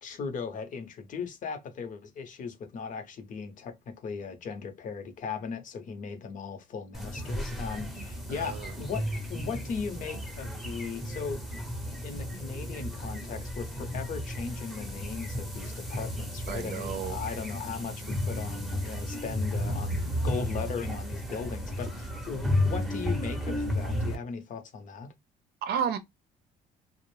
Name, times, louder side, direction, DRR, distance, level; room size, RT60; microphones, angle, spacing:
voice 1, 0.0-11.4 12.0-25.1, left 5 dB, 50° left, 0.8 m, -38 dB
sound 1, 6.9-24.2, left 1 dB, ahead, 0.7 m, -33 dB
voice 2, 8.3-8.7 16.5-17.2 25.6-26.0, right 7 dB, 70° right, 0.6 m, -32 dB
2.5 x 2.0 x 3.1 m
cardioid pair, 110°, 17 cm